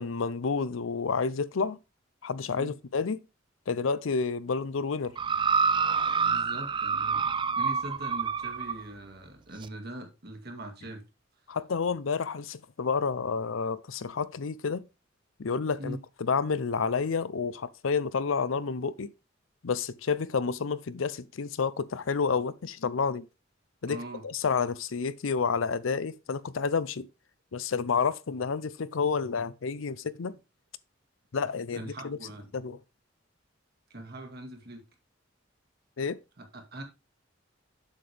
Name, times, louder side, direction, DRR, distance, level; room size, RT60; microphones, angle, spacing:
voice 1, 0.0-1.8 2.2-3.2 3.7-5.1 11.5-14.9 15.4-19.1 19.6-23.3 23.8-24.0 24.2-27.1 27.5-30.4 31.3-32.2 32.5-32.8 36.0-36.2, left 5 dB, 85° left, 0.6 m, -30 dB
sound 1, 5.2-8.8 9.6-9.7, right 5 dB, 25° right, 0.4 m, -27 dB
voice 2, 6.2-7.3 7.6-11.0 15.8-16.0 23.9-24.3 31.7-32.5 33.9-34.8 36.4-36.8, right 1 dB, 55° right, 2.0 m, -41 dB
7.4 x 6.8 x 3.4 m
head